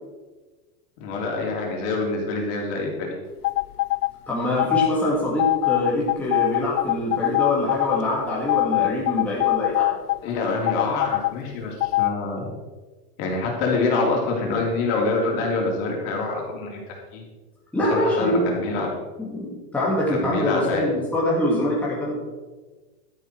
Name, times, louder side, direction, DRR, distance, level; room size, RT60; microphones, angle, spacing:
voice 1, 1.0-3.1 10.2-12.5 13.2-17.2 17.8-18.9 20.1-20.9, left 3 dB, 40° left, 0 dB, 3.5 m, -26 dB
sound 1, 3.4-4.1 4.6-4.9 5.4-8.0 8.5-10.2 10.7-11.3 11.8-12.1, left 19 dB, 80° left, 0.5 m, -22 dB
voice 2, 4.3-9.9 17.7-18.6 19.2-22.2, left 1 dB, 5° left, -6 dB, 2.1 m, -24 dB
12.0 x 11.0 x 4.6 m, 1.3 s
supercardioid pair, 160°, 46 cm